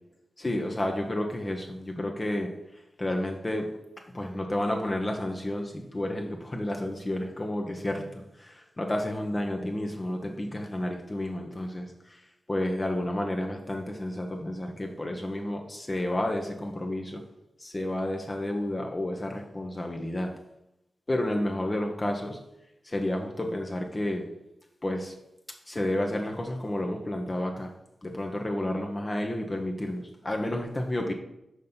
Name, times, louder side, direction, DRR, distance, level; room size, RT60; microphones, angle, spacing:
voice 1, 0.4-2.5 3.0-3.7 4.1-11.9 12.5-17.2 17.6-20.3 21.1-22.4 22.9-24.2 24.8-25.1 25.7-27.7 28.0-31.1, left 1 dB, 30° left, 2 dB, 1.0 m, -31 dB
6.2 x 4.2 x 5.4 m, 0.85 s
cardioid pair, 55°, 0 cm